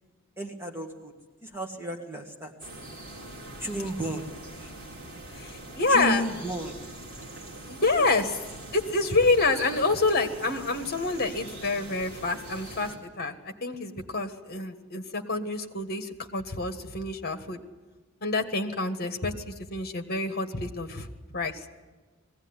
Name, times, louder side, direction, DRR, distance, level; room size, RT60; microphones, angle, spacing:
voice 1, 0.4-1.1 1.4-2.5 3.6-4.3 4.6-4.7 5.9-6.8, equal, 10° right, 2 dB, 1.6 m, -33 dB
sound 1, 2.6-13.0, right 2 dB, 45° right, 3.5 m, -43 dB
voice 2, 5.4-6.2 7.7-8.4 8.7-17.6 18.2-21.1 21.3-21.6, left 3 dB, 45° left, 7 dB, 1.6 m, -27 dB
20.5 x 16.5 x 9.8 m, 1.3 s
head